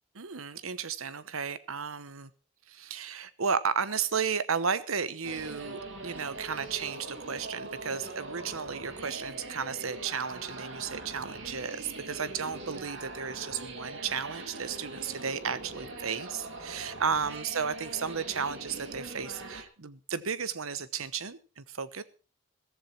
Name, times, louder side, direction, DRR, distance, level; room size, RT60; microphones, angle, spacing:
voice 1, 0.1-2.3 2.7-22.0, right 6 dB, 80° right, 15 dB, 1.0 m, -33 dB
sound 1, 5.2-19.6, right 2 dB, 60° right, 2.5 m, -42 dB
15.0 x 14.5 x 4.4 m, 0.35 s
head